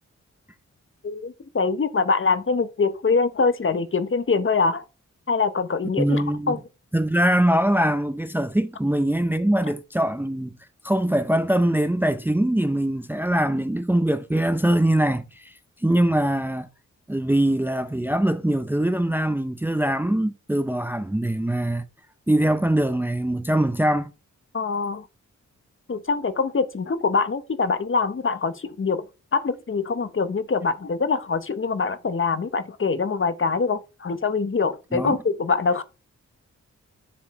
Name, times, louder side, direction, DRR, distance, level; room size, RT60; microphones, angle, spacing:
voice 1, 1.0-4.8 5.3-6.6 24.5-25.1 25.9-29.0 29.3-35.8, left 4 dB, 45° left, 1.0 m, -24 dB
voice 2, 6.0-6.6 6.9-10.6 10.8-15.5 15.8-16.7 17.1-21.8 22.3-24.1 34.9-35.2, right 1 dB, 5° right, 0.6 m, -22 dB
7.1 x 7.0 x 3.2 m
wide cardioid pair, 100°, 30 cm